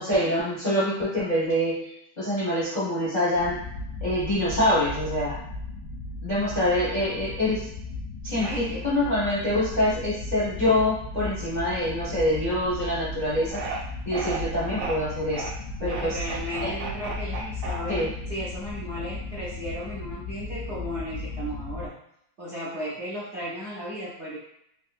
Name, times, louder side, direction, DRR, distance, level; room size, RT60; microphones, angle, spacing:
voice 1, 0.0-1.9 2.2-3.6 4.0-5.4 6.2-7.7 8.2-13.6 14.0-15.4 15.8-16.2 16.6-16.7 17.9-18.1, left 1 dB, 40° left, -8 dB, 0.6 m, -25 dB
sound 1, 3.3-21.9, left 2 dB, 75° left, 1.1 m, -36 dB
voice 2, 8.3-8.8 15.8-21.9 22.4-24.4, equal, 60° right, -6 dB, 0.7 m, -35 dB
sound 2, 13.5-13.8 14.1-15.0 15.3-15.5 15.8-18.4, right 4 dB, 90° right, 1.4 m, -34 dB
3.5 x 2.8 x 2.4 m, 0.74 s
omnidirectional pair, 2.0 m